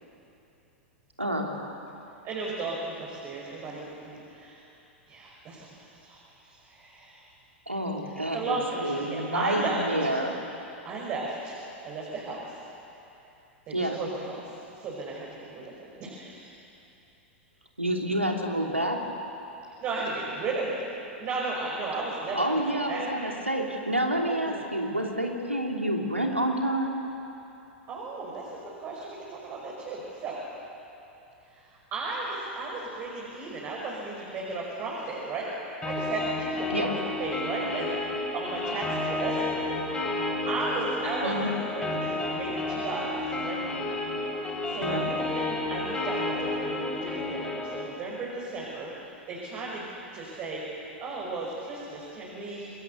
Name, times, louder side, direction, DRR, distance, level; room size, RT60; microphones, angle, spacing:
voice 1, 1.2-1.9 7.7-10.4 13.7-14.0 17.8-19.0 22.3-26.9 36.7-37.0 41.2-41.5 44.8-45.1, right 1 dB, 90° right, 1 dB, 3.0 m, -28 dB
voice 2, 2.2-4.6 5.1-7.3 8.1-9.8 10.8-11.6 11.8-12.6 13.7-16.6 19.8-20.8 21.2-23.1 24.3-24.7 27.9-28.5 28.8-30.4 31.4-39.7 40.5-43.6 44.7-48.9 49.3-49.8 50.1-52.7, right 3 dB, 35° right, -4 dB, 5.6 m, -35 dB
sound 1, 35.8-47.8, left 2 dB, 15° left, 5.0 m, -31 dB
27.5 x 22.0 x 8.1 m, 3.0 s
figure-of-eight pair, 95°, 7 cm